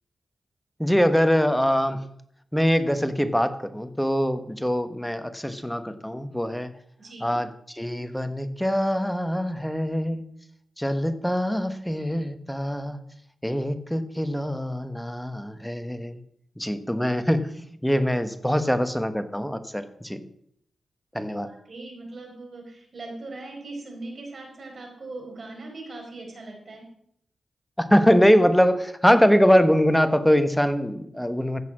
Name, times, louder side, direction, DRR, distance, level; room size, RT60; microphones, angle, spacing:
voice 1, 0.8-2.0 2.5-6.7 7.2-10.3 10.8-13.0 13.4-16.2 16.6-17.5 17.8-20.2 21.1-21.5 27.8-31.6, equal, 5° left, 10 dB, 1.2 m, -23 dB
voice 2, 7.0-7.4 18.5-18.7 21.5-26.8, right 2 dB, 55° right, 1 dB, 4.8 m, -40 dB
15.0 x 6.7 x 6.3 m, 0.69 s
cardioid pair, 75°, 0 cm